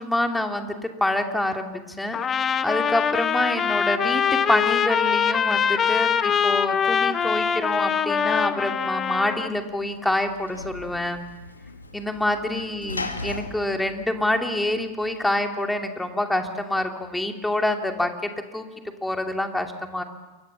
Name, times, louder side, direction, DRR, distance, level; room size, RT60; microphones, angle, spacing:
voice 1, 0.0-2.2 2.6-11.2 11.9-18.7 19.0-20.0, left 1 dB, 5° left, 5 dB, 2.6 m, -26 dB
Trumpet, 2.1-9.5, left 7 dB, 25° left, 1.1 m, -23 dB
Sliding door / Slam, 9.2-15.0, left 3 dB, 80° left, 2.2 m, -38 dB
28.5 x 23.0 x 7.3 m, 1.2 s
figure-of-eight pair, 90°, 0 cm